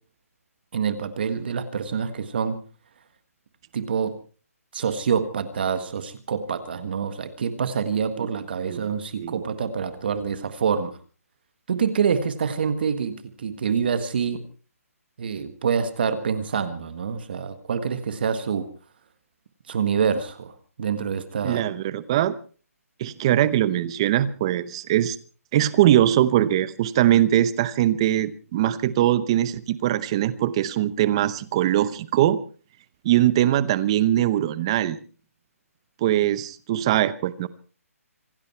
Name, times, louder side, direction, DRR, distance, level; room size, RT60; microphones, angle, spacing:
voice 1, 0.7-2.6 3.7-4.1 4.7-11.0 11.7-14.4 15.2-18.7 19.7-21.6, right 6 dB, 40° right, 1.6 m, -26 dB
voice 2, 8.2-8.9 9.2-9.3 21.4-22.3 23.0-25.2 25.5-32.4 33.0-35.0 36.0-37.5, right 12 dB, 20° right, 0.8 m, -21 dB
26.0 x 11.5 x 4.5 m
hypercardioid pair, 170°, 8 cm